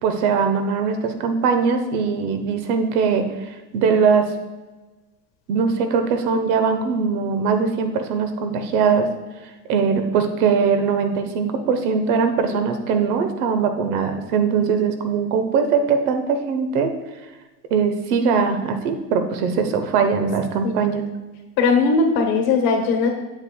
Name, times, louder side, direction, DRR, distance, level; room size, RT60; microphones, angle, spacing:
voice 1, 0.0-3.3 3.7-4.3 5.5-9.1 9.7-16.9 17.7-21.1, right 5 dB, 65° right, 7 dB, 1.1 m, -21 dB
voice 2, 21.6-23.1, left 4 dB, 50° left, 3 dB, 1.5 m, -19 dB
8.0 x 7.3 x 2.3 m, 1.2 s
hypercardioid pair, 110°, 48 cm